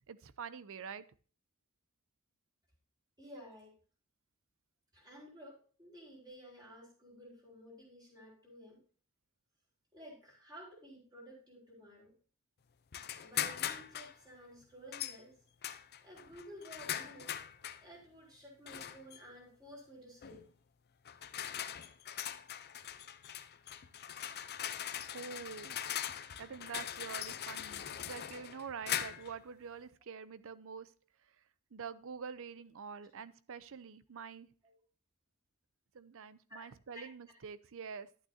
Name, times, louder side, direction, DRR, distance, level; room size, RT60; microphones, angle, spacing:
voice 1, 0.1-1.0 25.1-25.8 26.4-30.9 31.7-34.5 35.9-38.1, right 6 dB, 65° right, 16 dB, 0.6 m, -46 dB
voice 2, 3.2-3.7 4.9-8.8 9.9-12.1 13.2-15.3 15.7-17.4 17.8-20.4 25.7-25.9 34.6-34.8 36.5-36.7 36.9-37.0, equal, 20° right, -3 dB, 4.7 m, -53 dB
sound 1, 12.9-14.1 14.9-15.2 15.6-17.8 18.7-19.2 20.2-20.4 21.0-29.4, left 10 dB, 50° left, 0.6 m, -41 dB
11.5 x 8.8 x 2.7 m, 0.40 s
head